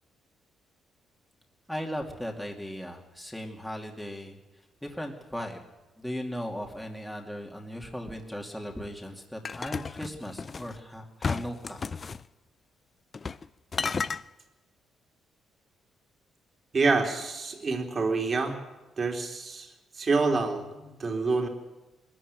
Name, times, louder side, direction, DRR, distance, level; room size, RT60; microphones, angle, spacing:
voice 1, 1.7-4.4 4.8-5.6 6.0-11.8, equal, 5° left, 1 dB, 2.6 m, -37 dB
sound 1, 9.4-10.7 11.2-12.2 13.1-13.5 13.7-14.2, left 5 dB, 35° left, 0.6 m, -32 dB
voice 2, 16.7-18.6 19.0-21.5, right 3 dB, 40° right, 3 dB, 3.7 m, -27 dB
21.0 x 14.0 x 9.5 m, 1.1 s
cardioid pair, 90°, 0 cm